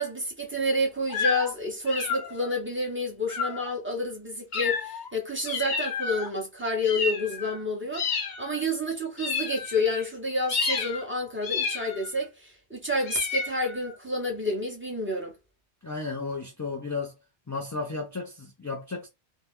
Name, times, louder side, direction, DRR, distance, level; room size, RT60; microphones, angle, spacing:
voice 1, 0.0-8.1 8.4-15.3, left 1 dB, 10° right, 1.0 m, -29 dB
sound 1, 1.1-1.5 1.9-2.5 3.3-3.7 4.5-5.1 5.5-6.3 6.8-7.6 7.9-8.6 9.2-10.1 10.5-11.0 11.4-12.2 13.1-14.0, left 5 dB, 55° left, 0.7 m, -31 dB
voice 2, 15.8-17.1 17.5-19.1, left 4 dB, 30° left, 0.3 m, -33 dB
2.7 x 2.3 x 3.4 m
omnidirectional pair, 1.1 m